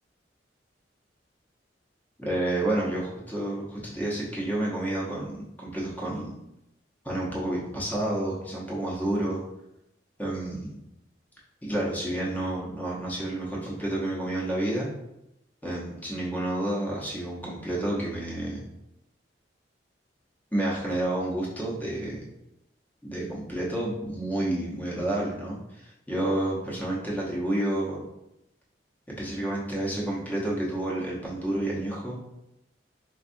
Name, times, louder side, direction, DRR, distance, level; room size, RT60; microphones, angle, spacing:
voice 1, 2.2-3.0 3.3-6.4 7.0-9.4 10.2-10.8 11.6-14.9 15.6-18.6 20.5-22.2 23.0-28.0 29.2-32.2, right 1 dB, 10° left, -5 dB, 0.8 m, -30 dB
4.4 x 2.3 x 2.5 m, 0.85 s
head